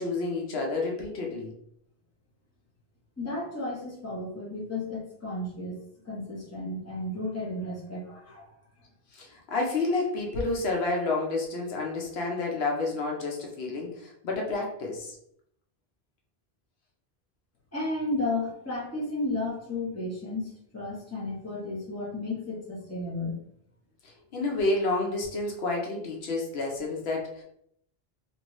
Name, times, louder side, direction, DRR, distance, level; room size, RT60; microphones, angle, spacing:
voice 1, 0.0-1.5 9.1-15.2 24.3-27.4, left 3 dB, 80° left, 0 dB, 1.0 m, -29 dB
voice 2, 3.2-5.8 6.0-8.5 17.7-23.4, left 2 dB, 15° left, -6 dB, 1.0 m, -33 dB
2.9 x 2.6 x 3.0 m, 0.70 s
omnidirectional pair, 1.0 m